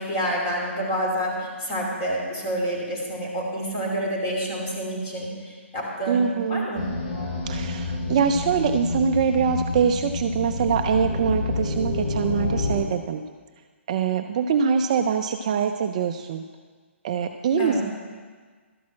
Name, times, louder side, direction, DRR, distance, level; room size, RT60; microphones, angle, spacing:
voice 1, 0.0-5.3 5.7-6.8 17.6-17.8, right 1 dB, 25° left, -2 dB, 2.9 m, -28 dB
voice 2, 6.1-6.7 7.5-13.2 13.9-16.4 17.0-17.8, right 6 dB, 30° right, 6 dB, 0.4 m, -23 dB
sound 1, 6.7-12.8, left 2 dB, 40° left, 3.1 m, -28 dB
12.5 x 6.0 x 7.4 m, 1.5 s
hypercardioid pair, 165°, 7 cm